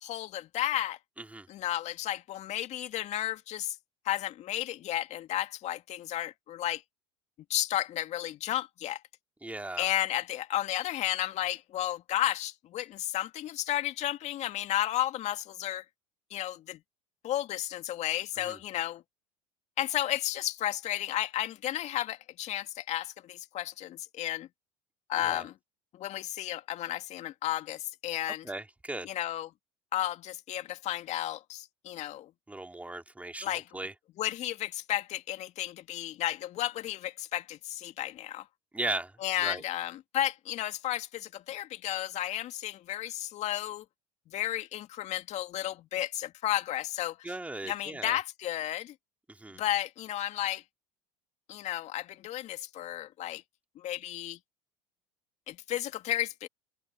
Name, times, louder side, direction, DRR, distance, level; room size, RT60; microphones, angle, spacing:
voice 1, 0.0-1.0 1.5-3.8 4.0-6.8 7.5-9.0 9.8-15.8 16.3-16.8 17.2-19.0 19.8-24.5 25.1-25.5 25.9-28.5 29.0-29.5 29.9-32.3 33.4-33.7 34.2-38.5 39.2-43.8 44.3-47.2 47.7-48.9 49.5-50.6 51.5-53.4 53.8-54.4 55.5-56.5, left 13 dB, 50° left, 2.3 m, -33 dB
voice 2, 9.4-9.9 18.4-18.6 25.2-25.5 28.4-29.1 32.5-33.9 38.7-39.6 47.2-48.2 49.3-49.6, right 2 dB, 10° right, 3.0 m, -37 dB
hypercardioid pair, 75°, 15 cm